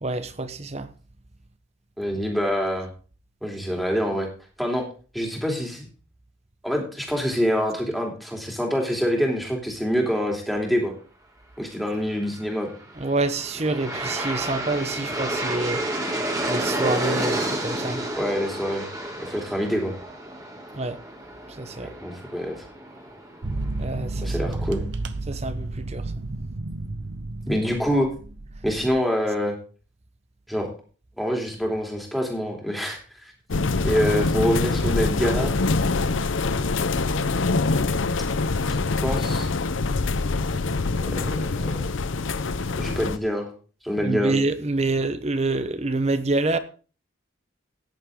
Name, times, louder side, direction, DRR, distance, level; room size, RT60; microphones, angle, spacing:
voice 1, 0.0-0.9 13.0-15.8 16.5-18.0 20.7-21.0 21.5-21.9 23.8-24.5 25.3-26.1 40.5-40.6 44.0-46.6, right 2 dB, 30° right, 0.9 m, -27 dB
voice 2, 2.0-2.9 3.4-4.3 4.6-4.8 5.1-5.9 6.6-10.9 11.6-12.7 18.2-18.9 19.2-19.9 21.8-22.6 24.2-24.9 27.5-28.1 28.6-29.5 30.5-30.7 31.2-33.3 33.8-35.6 36.5-36.6 38.7-39.5 41.0-41.8 42.7-43.5 43.8-44.3, equal, ahead, 2.9 m, -26 dB
Aircraft, 12.8-23.9, right 1 dB, 15° right, 2.3 m, -30 dB
sound 1, 23.4-29.0, right 2 dB, 55° right, 0.8 m, -32 dB
sound 2, 33.5-43.2, left 3 dB, 75° left, 0.7 m, -24 dB
14.0 x 10.0 x 3.7 m
head